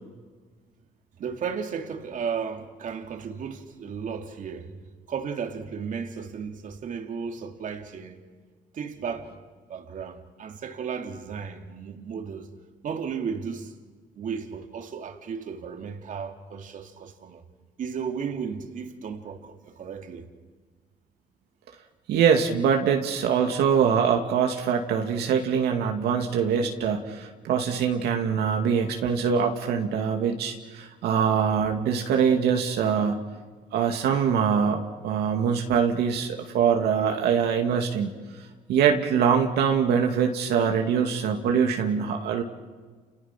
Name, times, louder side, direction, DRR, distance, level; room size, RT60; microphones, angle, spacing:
voice 1, 1.2-4.8 5.1-8.2 8.7-9.4 9.7-12.5 12.8-13.8 14.2-17.4 17.8-20.3, right 6 dB, 50° right, 2.6 m, -34 dB
voice 2, 22.1-33.2 33.7-38.1 38.7-42.4, right 7 dB, 75° right, 2.4 m, -23 dB
30.0 x 30.0 x 6.0 m
cardioid pair, 110°, 17 cm